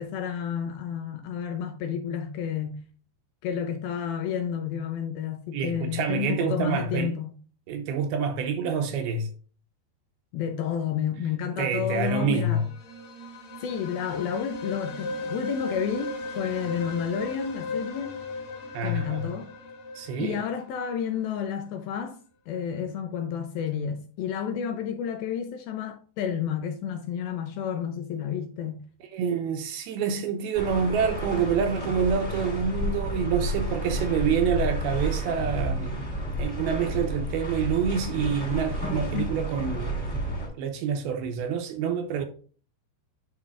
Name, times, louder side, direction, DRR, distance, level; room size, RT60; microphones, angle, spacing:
voice 1, 0.0-2.8 3.4-7.3 10.3-12.7 13.6-18.2 18.8-19.5 20.2-22.2 22.5-28.8 39.1-39.3, left 8 dB, 80° left, 2.1 m, -31 dB
voice 2, 5.5-7.1 7.7-9.3 11.6-12.7 18.7-19.3 20.0-20.4 29.1-36.1 36.4-40.2 40.6-42.3, right 6 dB, 80° right, 2.4 m, -27 dB
sound 1, 12.4-21.2, left 2 dB, 55° left, 3.4 m, -37 dB
sound 2, 30.5-40.5, right 1 dB, 20° left, 1.4 m, -31 dB
10.0 x 4.9 x 2.4 m
omnidirectional pair, 5.0 m